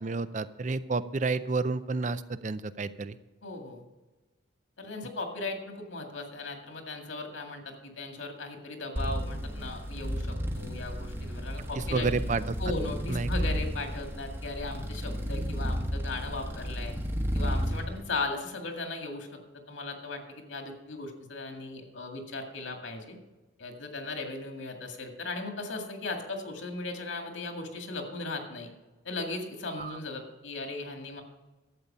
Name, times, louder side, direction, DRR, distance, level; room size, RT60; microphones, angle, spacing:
voice 1, 0.0-3.2 11.8-12.6 13.1-13.3 29.8-30.0, right 3 dB, 40° right, 14 dB, 0.5 m, -30 dB
voice 2, 3.4-3.8 4.8-12.1 12.6-16.9 17.3-19.3 19.7-23.2 23.6-28.7 29.0-31.2, left 3 dB, 80° left, 3 dB, 2.1 m, -37 dB
sound 1, 8.9-17.9, equal, 10° right, 1.1 m, -33 dB
12.5 x 8.3 x 5.5 m, 1.2 s
head